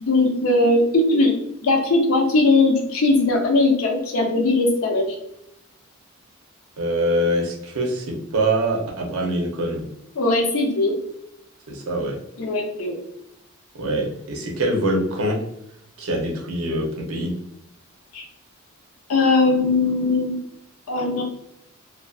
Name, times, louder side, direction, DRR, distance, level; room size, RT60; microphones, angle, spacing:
voice 1, 0.1-5.2 10.2-11.0 12.4-13.0 18.1-18.2 19.1-20.4 20.9-21.2, left 2 dB, 70° left, 2 dB, 0.5 m, -19 dB
voice 2, 6.8-9.8 11.7-12.2 13.7-15.4 16.0-17.3, right 1 dB, 75° right, 0 dB, 0.6 m, -24 dB
2.4 x 2.3 x 2.3 m, 0.79 s
head